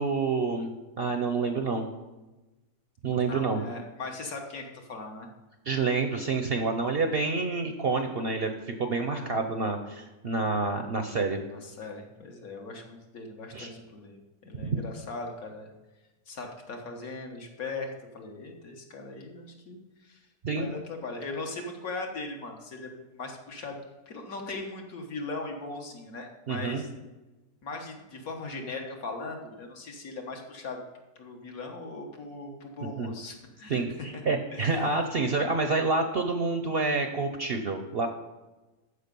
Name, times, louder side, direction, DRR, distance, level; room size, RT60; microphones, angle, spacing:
voice 1, 0.0-1.9 3.0-3.6 5.7-8.5 8.8-11.4 13.5-13.7 14.6-14.8 20.4-20.7 26.5-26.8 33.0-33.1 33.7-38.1, right 4 dB, 50° right, 6 dB, 0.7 m, -28 dB
voice 2, 3.2-5.3 9.1-9.4 11.5-15.7 16.3-20.2 20.6-23.8 24.1-26.9 27.6-30.8 31.2-33.8 34.1-34.2 34.5-34.8, left 3 dB, 65° left, 2 dB, 1.7 m, -39 dB
13.5 x 4.9 x 5.3 m, 1.1 s
omnidirectional pair, 1.6 m